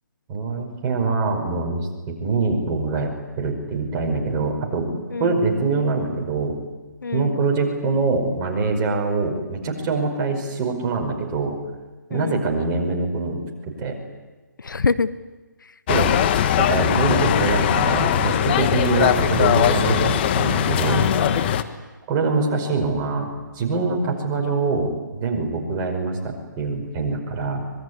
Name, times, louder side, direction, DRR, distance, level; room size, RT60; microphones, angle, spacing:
voice 1, 0.3-3.1 3.4-4.9 5.2-6.6 7.1-11.6 12.1-14.0 15.9-16.2 16.6-21.1 22.1-23.3 23.5-27.6, right 3 dB, 20° right, 2 dB, 5.3 m, -24 dB
voice 2, 5.1-5.4 7.0-7.4 12.1-12.4 14.6-15.1 15.6-15.7 20.8-21.6, left 4 dB, 75° left, 15 dB, 1.1 m, -26 dB
sound 1, 15.9-21.6, left 10 dB, 30° left, 1.3 m, -20 dB
25.0 x 22.0 x 9.7 m, 1.2 s
hypercardioid pair, 150°, 11 cm